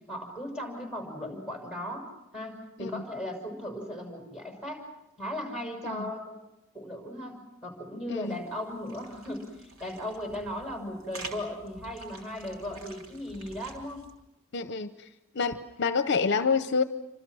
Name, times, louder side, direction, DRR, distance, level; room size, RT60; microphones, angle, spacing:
voice 1, 0.1-2.1 2.3-4.9 5.2-6.4 6.7-14.1, left 1 dB, 5° right, 4 dB, 6.1 m, -37 dB
sound 1, 8.2-14.1, right 2 dB, 75° right, 3.5 m, -48 dB
voice 2, 14.5-14.9 15.3-16.8, left 5 dB, 55° left, 11 dB, 0.8 m, -27 dB
28.5 x 26.0 x 6.3 m, 0.91 s
head